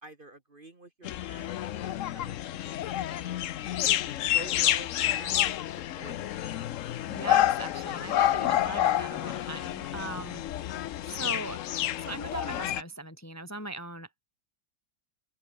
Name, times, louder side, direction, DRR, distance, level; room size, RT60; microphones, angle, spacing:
voice 1, 0.0-3.4 4.3-6.4, right 2 dB, 30° right, 1.8 m, -48 dB
sound 1, 1.0-12.8, left 12 dB, 65° left, 0.8 m, -29 dB
voice 2, 7.1-10.4 11.0-11.6 12.0-14.1, right 2 dB, 10° left, 1.6 m, -39 dB
open air
omnidirectional pair, 1.9 m